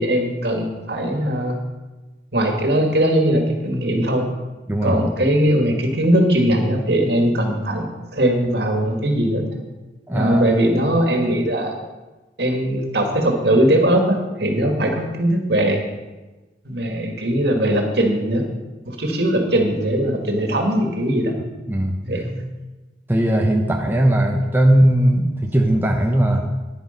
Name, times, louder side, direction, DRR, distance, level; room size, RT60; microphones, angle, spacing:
voice 1, 0.0-1.6 2.3-4.2 4.8-7.8 8.1-9.4 10.1-11.8 12.4-15.8 16.6-18.4 18.9-21.3 22.0-22.5, right 1 dB, 65° right, 3 dB, 2.1 m, -20 dB
voice 2, 4.7-5.0 10.1-10.6 21.7-21.9 23.1-26.4, right 1 dB, 10° right, 1 dB, 0.8 m, -18 dB
10.0 x 10.0 x 5.3 m, 1.1 s
head